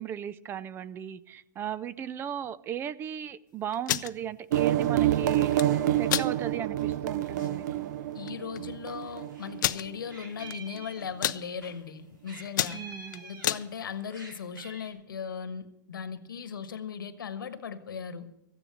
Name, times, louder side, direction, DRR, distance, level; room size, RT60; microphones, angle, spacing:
voice 1, 0.0-5.6 6.0-7.9 12.7-13.2, right 9 dB, 20° right, 0.4 m, -36 dB
sound 1, 3.7-4.1 5.3-5.7 6.1-6.3 6.8-6.9 7.3-7.5 8.3-8.4 8.6-8.7 9.6-9.8 10.5-10.8 11.0-11.4 12.0-12.2 12.5-13.6, left 12 dB, 65° left, 0.6 m, -29 dB
sound 2, 4.5-9.9, right 12 dB, 60° right, 0.7 m, -28 dB
voice 2, 8.1-12.8 13.2-18.3, left 6 dB, 90° left, 1.3 m, -38 dB
Meow, 8.9-9.5 9.8-11.7 12.3-13.8 14.1-14.9, right 3 dB, 85° right, 4.9 m, -47 dB
14.0 x 9.6 x 7.3 m
hypercardioid pair, 130°, 11 cm